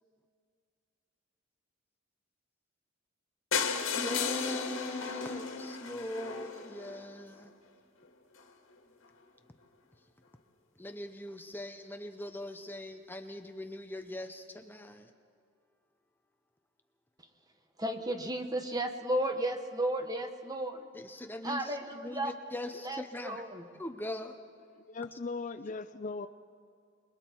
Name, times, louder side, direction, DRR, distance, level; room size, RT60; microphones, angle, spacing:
sound 1, 3.5-7.4 8.0-8.1 8.4-8.5 8.8-8.9 9.0-9.1, left 5 dB, 85° left, 2.0 m, -35 dB
voice 1, 3.9-7.5 10.8-15.1 20.9-23.4 23.7-24.4 25.1-25.2, left 1 dB, 10° left, 7 dB, 0.8 m, -41 dB
voice 2, 17.8-20.8 21.4-22.3 22.8-23.6, right 1 dB, 20° right, 6 dB, 1.3 m, -33 dB
voice 3, 24.9-26.3, left 4 dB, 40° left, 11 dB, 0.5 m, -38 dB
28.0 x 22.0 x 4.6 m, 2.2 s
head